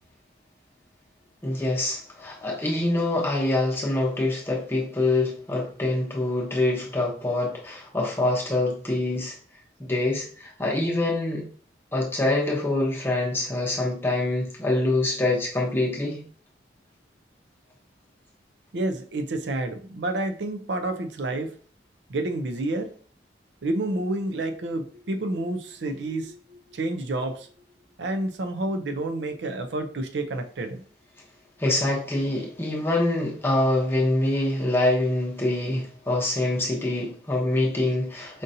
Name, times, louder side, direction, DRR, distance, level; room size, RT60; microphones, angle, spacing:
voice 1, 1.4-9.3 9.8-11.5 11.9-16.2 31.6-38.4, left 2 dB, 15° left, 0.9 m, -25 dB
voice 2, 18.7-21.6 22.1-23.0 23.6-27.5 28.0-30.8, right 2 dB, 80° right, 0.5 m, -29 dB
5.1 x 2.6 x 2.7 m
head